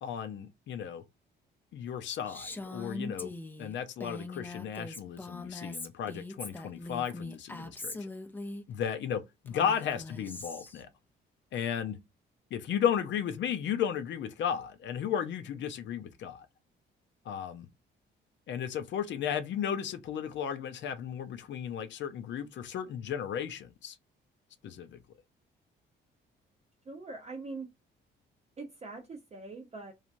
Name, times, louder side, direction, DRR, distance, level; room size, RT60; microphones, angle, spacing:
voice 1, 0.0-1.0 1.7-3.3 3.6-8.1 8.7-10.9 11.5-12.0 12.5-16.5 17.3-17.7 18.5-24.0 24.6-25.0, left 8 dB, 65° left, 0.5 m, -34 dB
Female speech woman speaking, 2.3-8.6 9.5-10.8, left 2 dB, 10° left, 0.5 m, -41 dB
voice 2, 26.8-27.7 28.6-29.9, right 3 dB, 35° right, 0.6 m, -42 dB
3.1 x 2.4 x 2.5 m
cardioid pair, 90°, 20 cm